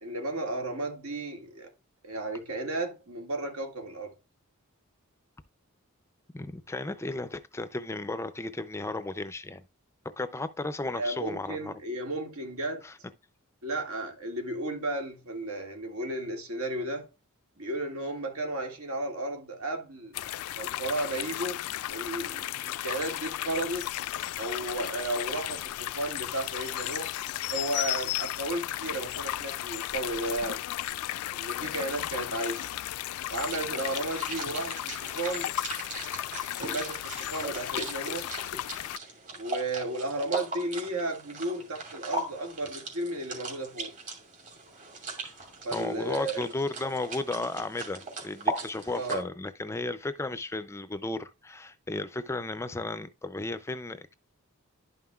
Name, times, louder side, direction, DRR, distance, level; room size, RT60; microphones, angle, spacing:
voice 1, 0.0-1.7 2.0-4.1 11.0-12.8 13.6-17.1 17.6-20.2 20.5-21.6 21.9-23.8 24.4-27.1 27.5-30.6 31.3-32.7 33.3-35.5 36.6-38.3 39.4-43.9 45.6-46.5 48.9-49.3, right 2 dB, 75° right, 2.1 m, -34 dB
voice 2, 6.3-9.6 10.2-11.7 12.8-13.0 45.2-54.1, left 2 dB, 10° left, 0.4 m, -34 dB
sound 1, 20.1-39.0, left 14 dB, 85° left, 0.3 m, -34 dB
sound 2, 33.4-49.2, right 2 dB, 35° right, 2.5 m, -39 dB
11.5 x 5.6 x 2.3 m
head